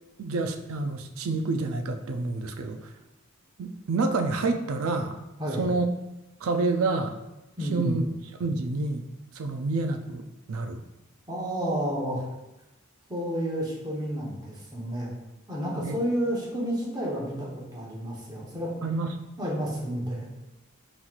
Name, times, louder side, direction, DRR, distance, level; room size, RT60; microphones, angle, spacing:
voice 1, 0.2-2.9 3.6-5.2 5.6-5.9 6.4-7.2 7.7-8.1 8.4-9.1 9.3-10.8 15.8-16.0 18.8-19.1, right 3 dB, 75° right, 7 dB, 0.4 m, -28 dB
voice 2, 7.6-8.0 11.3-12.2 13.1-15.1 15.5-18.8 19.4-20.3, equal, 20° right, -5 dB, 1.0 m, -30 dB
5.5 x 3.0 x 2.4 m, 0.97 s
head